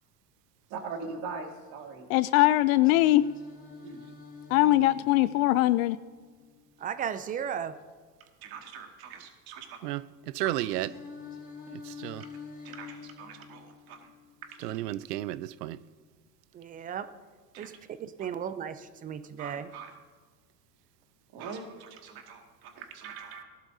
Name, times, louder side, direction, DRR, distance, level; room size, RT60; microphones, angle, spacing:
voice 1, 0.7-2.1 3.8-4.1 8.4-9.8 10.4-10.5 12.6-14.1 14.5-14.8 17.5-17.8 19.4-19.9 21.3-23.4, right 5 dB, 50° right, 2.1 m, -42 dB
voice 2, 2.1-3.3 4.5-6.0, left 16 dB, 60° left, 0.5 m, -21 dB
Singing, 2.8-6.8 10.8-14.8, left 5 dB, 20° left, 3.1 m, -47 dB
voice 3, 6.8-7.7 16.5-17.1 17.6-17.7 18.0-19.7, right 8 dB, 20° right, 0.3 m, -35 dB
voice 4, 10.3-10.9 11.7-12.2 14.6-15.8, right 15 dB, 75° right, 0.6 m, -32 dB
18.5 x 11.5 x 2.7 m
hypercardioid pair, 95°, 48 cm